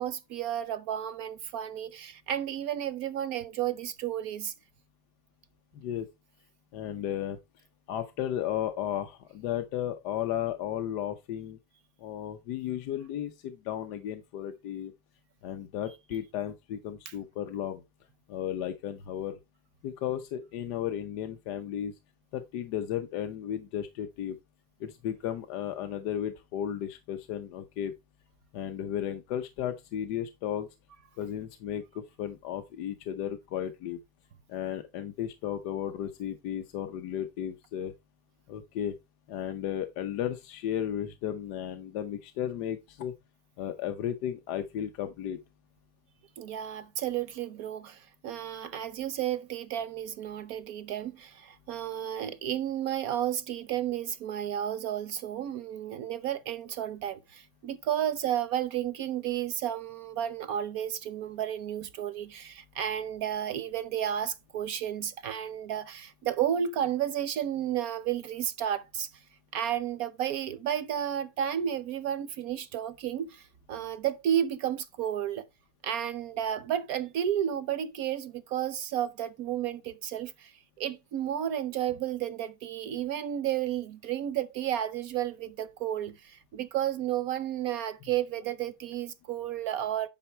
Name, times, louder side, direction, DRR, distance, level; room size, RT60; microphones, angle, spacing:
voice 1, 0.0-4.5 17.1-17.2 46.4-69.1 69.5-75.4 75.8-90.1, right 10 dB, 65° right, 1.0 m, -32 dB
voice 2, 5.7-6.1 6.7-7.4 7.9-11.6 12.0-14.9 15.4-17.8 18.3-19.4 19.8-22.0 22.3-24.4 24.8-27.9 28.5-30.7 31.2-34.0 34.5-37.9 38.5-39.0 39.3-43.1 43.6-45.4, left 10 dB, 70° left, 1.4 m, -34 dB
10.0 x 5.3 x 4.3 m
omnidirectional pair, 1.9 m